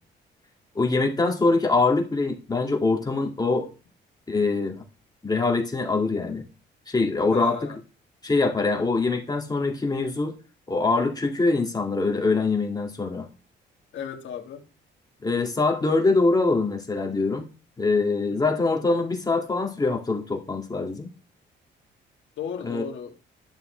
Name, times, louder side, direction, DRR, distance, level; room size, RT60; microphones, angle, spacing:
voice 1, 0.7-3.7 4.3-4.8 5.2-6.4 6.9-7.7 8.2-10.4 10.7-13.3 15.2-17.5 17.8-21.1 22.6-22.8, left 3 dB, 20° left, 2.3 m, -23 dB
voice 2, 7.3-7.8 13.9-14.6 18.3-18.6 22.4-23.1, left 7 dB, 70° left, 1.9 m, -35 dB
11.5 x 7.0 x 3.3 m
cardioid pair, 90°, 20 cm